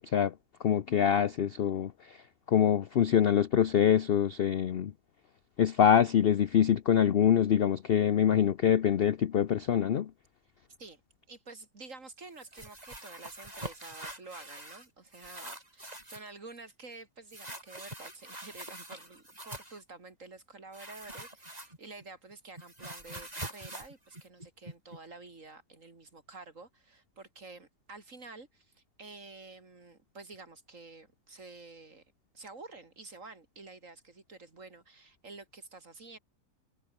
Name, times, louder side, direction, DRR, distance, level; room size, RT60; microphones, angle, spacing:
voice 1, 0.6-2.2 2.5-4.9 5.6-10.1, left 9 dB, 70° left, 0.5 m, -25 dB
voice 2, 11.3-32.0 32.3-36.2, right 3 dB, 50° right, 3.6 m, -49 dB
sound 1, 12.4-14.9 15.1-16.3 17.3-19.8 20.7-22.0 22.3-25.0, right 1 dB, 20° right, 5.2 m, -44 dB
omnidirectional pair, 1.8 m